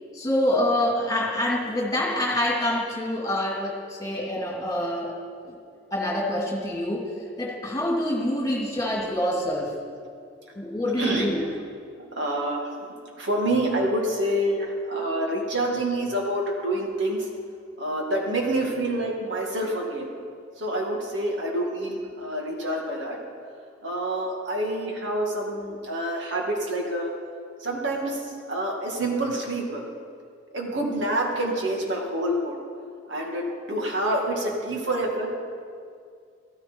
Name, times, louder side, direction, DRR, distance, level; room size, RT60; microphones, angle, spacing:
voice 1, 0.1-5.1 5.4-5.6 5.9-7.1 7.4-9.7 10.5-11.4, left 1 dB, 20° left, -3 dB, 2.4 m, -26 dB
voice 2, 12.2-12.6 13.2-17.2 17.8-20.1 20.6-23.2 23.8-27.1 27.6-29.8 30.5-32.6 33.1-35.3, right 1 dB, 75° right, 0 dB, 2.2 m, -27 dB
14.0 x 14.0 x 4.7 m, 2.2 s
head